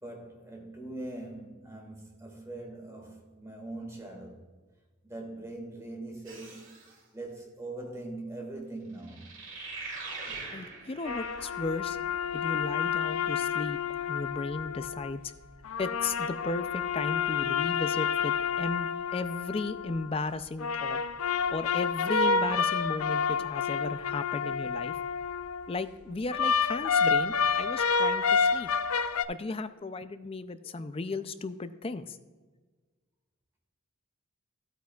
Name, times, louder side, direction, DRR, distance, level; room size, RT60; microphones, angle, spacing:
voice 1, 0.0-4.5 5.0-6.8 7.1-9.3, right 2 dB, 15° right, 1.8 m, -42 dB
sound 1, 6.2-6.9 9.0-11.9, right 3 dB, 60° right, 1.9 m, -42 dB
voice 2, 10.5-12.0 12.3-15.3 15.8-21.0 21.5-25.0 25.7-28.7 29.3-32.2, left 3 dB, 25° left, 0.4 m, -35 dB
sound 2, 11.0-15.1 15.6-20.1 20.6-25.7 26.3-29.2, left 6 dB, 85° left, 0.5 m, -29 dB
14.0 x 8.9 x 2.3 m
head